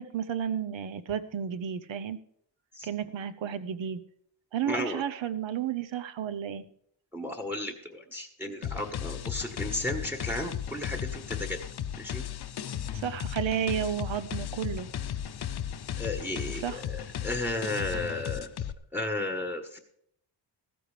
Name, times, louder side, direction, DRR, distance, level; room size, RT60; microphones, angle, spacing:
voice 1, 0.0-2.2 2.8-4.0 4.5-6.6 12.9-14.9 16.5-16.8, right 8 dB, 85° right, 12 dB, 0.9 m, -32 dB
voice 2, 4.7-5.0 7.1-11.6 12.0-12.2 16.0-18.5 18.9-19.8, left 1 dB, 5° right, 6 dB, 1.2 m, -34 dB
sound 1, 8.6-18.7, left 9 dB, 60° left, 0.7 m, -35 dB
15.0 x 14.0 x 3.3 m, 0.68 s
wide cardioid pair, 150°, 45 cm